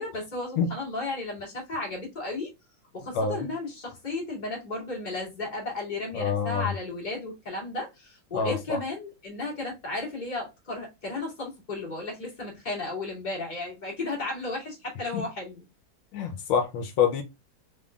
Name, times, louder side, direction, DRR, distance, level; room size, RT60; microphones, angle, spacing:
voice 1, 0.0-2.5 2.9-15.6, left 2 dB, 25° left, 1.7 m, -34 dB
voice 2, 3.1-3.5 6.1-6.7 8.3-8.8 15.1-15.3 16.1-17.2, left 6 dB, 80° left, 1.4 m, -26 dB
3.9 x 3.5 x 2.3 m
omnidirectional pair, 2.2 m